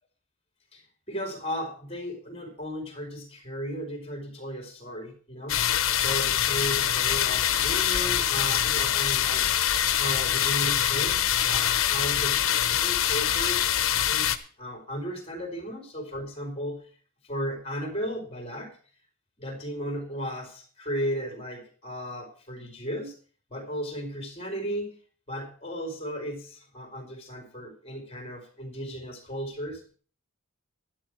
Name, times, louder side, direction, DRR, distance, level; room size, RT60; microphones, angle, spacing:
voice 1, 0.7-5.7 5.9-9.5 9.9-14.3 14.6-16.9 17.2-18.8 19.4-23.1 23.5-25.0 25.3-29.9, equal, 25° left, 3 dB, 4.2 m, -35 dB
sound 1, 5.5-14.4, left 10 dB, 65° left, 1.0 m, -24 dB
11.5 x 11.5 x 4.7 m, 0.42 s
head